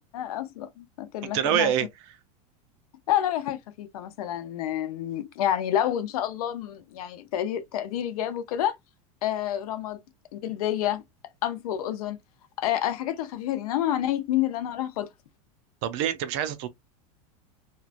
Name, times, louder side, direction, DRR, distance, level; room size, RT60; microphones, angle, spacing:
voice 1, 0.0-1.7 3.1-8.7 9.2-10.0 10.3-11.0 11.4-12.2 12.6-15.1, left 11 dB, 85° left, 0.6 m, -29 dB
voice 2, 1.2-1.9 15.8-16.7, right 10 dB, 50° right, 0.5 m, -25 dB
3.0 x 2.3 x 2.4 m
supercardioid pair, 155°, 18 cm